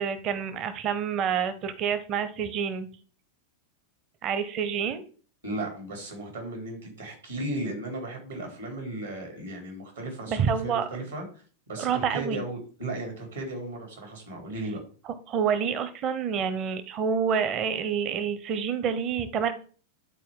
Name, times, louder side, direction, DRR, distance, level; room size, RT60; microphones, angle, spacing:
voice 1, 0.0-2.9 4.2-5.1 10.3-10.9 11.8-12.4 15.3-19.5, right 7 dB, 35° right, 12 dB, 0.8 m, -28 dB
voice 2, 5.4-14.8, right 1 dB, 75° right, 1 dB, 3.5 m, -36 dB
11.0 x 4.4 x 3.7 m, 0.40 s
figure-of-eight pair, 90°, 0 cm